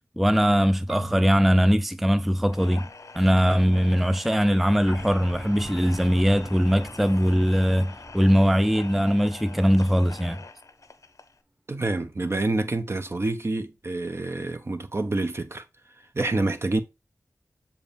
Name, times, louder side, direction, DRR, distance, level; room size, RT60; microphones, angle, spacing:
voice 1, 0.2-2.9 3.2-10.4, equal, 5° right, 0.4 m, -21 dB
Marimba xylophone / Wood, 0.9-3.8, right 6 dB, 85° right, 1.2 m, -46 dB
sound 1, 2.5-11.4, left 4 dB, 65° left, 0.7 m, -44 dB
sound 2, 4.5-10.3, right 1 dB, 20° right, 1.3 m, -44 dB
voice 2, 11.7-15.6 16.1-16.8, right 2 dB, 50° right, 1.0 m, -27 dB
6.8 x 4.8 x 3.4 m
wide cardioid pair, 55°, 6 cm